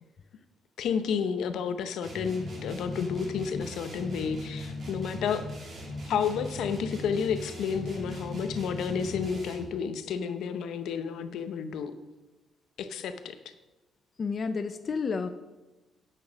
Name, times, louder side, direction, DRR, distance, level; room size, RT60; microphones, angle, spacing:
voice 1, 0.8-5.5 6.1-11.9 12.8-13.5, left 6 dB, 80° left, 9 dB, 0.8 m, -31 dB
sound 1, 2.0-9.8, left 1 dB, 40° right, 2.5 m, -39 dB
voice 2, 14.2-15.3, left 5 dB, 35° left, 9 dB, 0.4 m, -30 dB
9.1 x 6.1 x 6.3 m, 1.1 s
cardioid pair, 165°, 0 cm